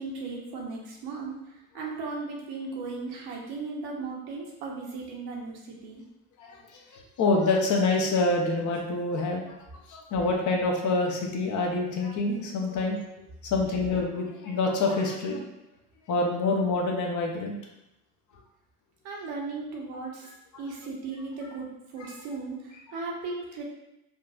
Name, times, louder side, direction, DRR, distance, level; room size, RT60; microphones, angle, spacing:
voice 1, 0.0-6.0 19.0-23.6, right 3 dB, 55° right, -2 dB, 1.0 m, -37 dB
voice 2, 6.4-9.4 9.9-13.0 13.5-15.4 16.1-17.6, left 3 dB, 40° left, 0 dB, 0.7 m, -26 dB
3.9 x 2.3 x 2.3 m, 0.89 s
hypercardioid pair, 70°, 45 cm